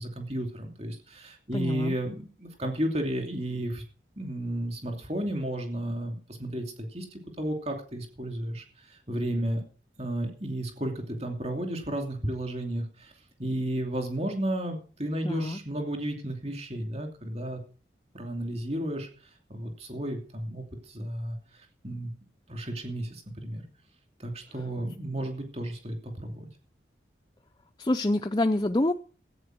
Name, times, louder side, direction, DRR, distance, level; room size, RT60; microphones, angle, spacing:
voice 1, 0.0-3.8 4.2-9.6 10.0-13.1 13.4-17.6 18.1-19.1 19.5-22.1 22.5-23.6 24.2-26.5, right 1 dB, 35° right, 4 dB, 2.8 m, -33 dB
voice 2, 1.5-2.0 15.2-15.6 27.8-28.9, left 1 dB, 25° left, 6 dB, 0.6 m, -26 dB
14.0 x 8.7 x 6.2 m, 0.39 s
head